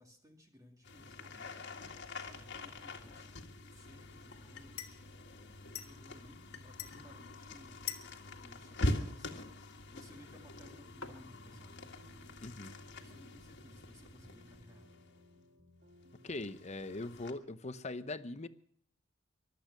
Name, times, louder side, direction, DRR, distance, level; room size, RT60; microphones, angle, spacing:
voice 1, 0.0-1.6 2.3-4.9 5.6-7.9 8.4-9.5 9.9-11.9 13.0-15.0, left 1 dB, 15° right, 2 dB, 2.3 m, -59 dB
sound 1, 0.8-15.3 16.0-17.3, left 1 dB, 55° left, 1.9 m, -44 dB
sound 2, 1.8-14.6, left 9 dB, 80° left, 1.8 m, -53 dB
sound 3, 10.6-16.5, left 1 dB, 50° right, 2.4 m, -61 dB
voice 2, 12.4-12.7 16.2-18.5, left 2 dB, 30° left, 13 dB, 0.8 m, -41 dB
23.5 x 8.8 x 6.1 m, 0.65 s
head